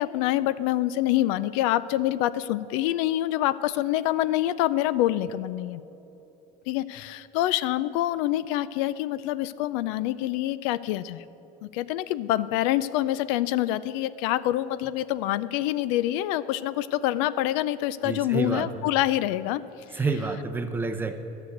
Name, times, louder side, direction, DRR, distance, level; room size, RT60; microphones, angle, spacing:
voice 1, 0.0-5.8 6.7-11.2 11.6-19.6 19.9-20.0, left 14 dB, 85° left, 17 dB, 0.4 m, -26 dB
voice 2, 18.0-18.9 19.9-21.2, right 4 dB, 10° right, 6 dB, 0.6 m, -29 dB
13.0 x 6.9 x 7.8 m, 3.0 s
cardioid pair, 165°, 16 cm